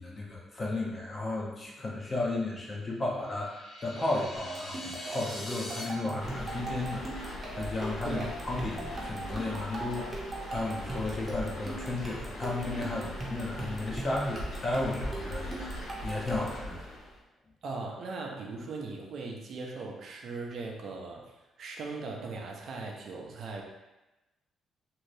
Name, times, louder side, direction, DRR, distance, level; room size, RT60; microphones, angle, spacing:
voice 1, 0.0-16.8, left 2 dB, 35° left, -3 dB, 0.8 m, -34 dB
sound 1, 3.1-5.8, left 1 dB, 60° left, 1.1 m, -43 dB
sound 2, 4.4-16.7, right 2 dB, 30° right, 0.8 m, -41 dB
sound 3, 6.2-17.2, left 1 dB, 80° left, 0.8 m, -40 dB
voice 2, 17.6-23.6, right 3 dB, 65° right, 0 dB, 0.5 m, -39 dB
2.7 x 2.5 x 3.2 m, 1.0 s
cardioid pair, 90°, 0 cm